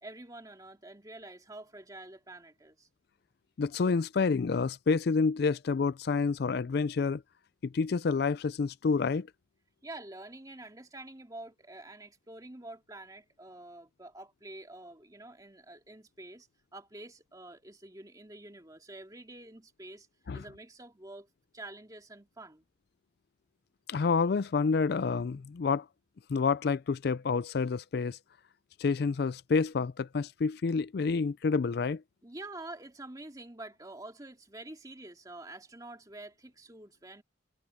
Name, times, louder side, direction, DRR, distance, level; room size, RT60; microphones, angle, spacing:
voice 1, 0.0-2.9 9.8-16.5 16.7-20.1 20.3-21.3 21.5-22.6 32.2-37.2, right 2 dB, 20° right, 2.3 m, -47 dB
voice 2, 3.6-7.2 7.6-9.3 20.3-20.4 23.9-25.8 26.3-28.2 28.8-32.0, left 4 dB, 55° left, 0.4 m, -28 dB
head